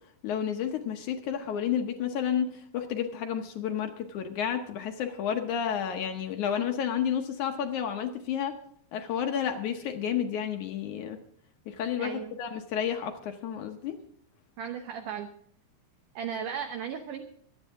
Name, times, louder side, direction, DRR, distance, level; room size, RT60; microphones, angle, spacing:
voice 1, 0.2-8.5 8.9-11.2 11.7-14.0, left 8 dB, 70° left, 5 dB, 1.9 m, -31 dB
voice 2, 12.0-12.4 14.6-15.3 16.2-17.2, right 8 dB, 70° right, 5 dB, 2.2 m, -35 dB
24.5 x 9.2 x 3.6 m, 0.63 s
omnidirectional pair, 4.5 m